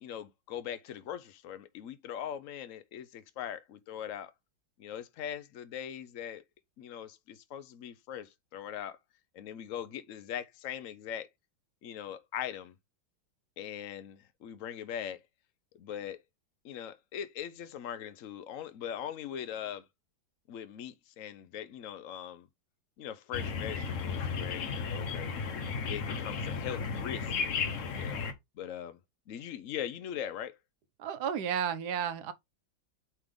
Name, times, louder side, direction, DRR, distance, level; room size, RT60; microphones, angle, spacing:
voice 1, 0.0-4.3 4.8-6.4 6.8-9.0 9.3-11.3 11.8-12.7 13.6-15.2 15.8-16.2 16.6-19.8 20.5-22.5 23.0-25.3 25.9-27.3 27.9-28.3 28.6-29.0 29.3-30.6, left 9 dB, 85° left, 0.7 m, -41 dB
sound 1, 23.3-28.3, left 5 dB, 50° left, 1.0 m, -34 dB
voice 2, 31.0-32.3, right 8 dB, 60° right, 1.2 m, -32 dB
8.8 x 3.5 x 3.7 m
omnidirectional pair, 2.2 m